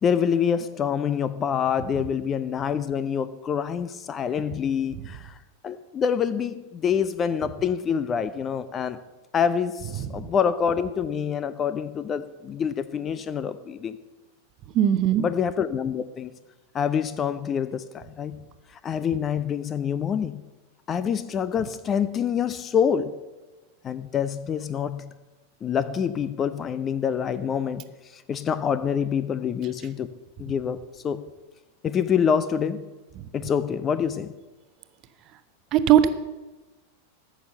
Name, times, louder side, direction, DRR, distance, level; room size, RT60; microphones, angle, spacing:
voice 1, 0.0-5.4 5.6-9.0 9.3-14.0 15.2-16.3 16.7-18.4 18.8-20.4 20.9-23.2 23.8-25.2 25.6-27.8 28.1-31.2 31.8-32.9 33.3-34.3, left 7 dB, 25° left, 14 dB, 0.6 m, -26 dB
voice 2, 14.7-15.2 35.7-36.1, right 10 dB, 35° right, 11 dB, 0.8 m, -18 dB
14.0 x 6.3 x 6.8 m, 1.2 s
figure-of-eight pair, 90°, 0 cm